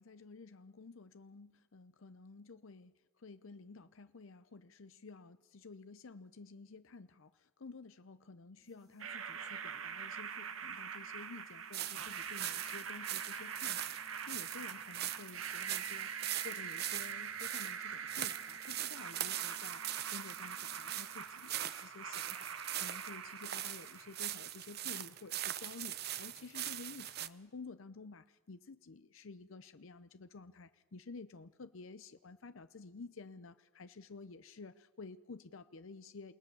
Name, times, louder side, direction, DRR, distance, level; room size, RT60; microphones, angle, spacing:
voice 1, 0.0-36.3, left 4 dB, 70° left, 12 dB, 0.7 m, -52 dB
sound 1, 8.6-21.5, left 1 dB, 20° right, 4.7 m, -66 dB
sound 2, 9.0-24.9, right 7 dB, 75° right, 1.3 m, -44 dB
sound 3, 11.7-27.3, right 12 dB, 50° right, 0.8 m, -41 dB
29.0 x 18.5 x 7.0 m, 1.2 s
head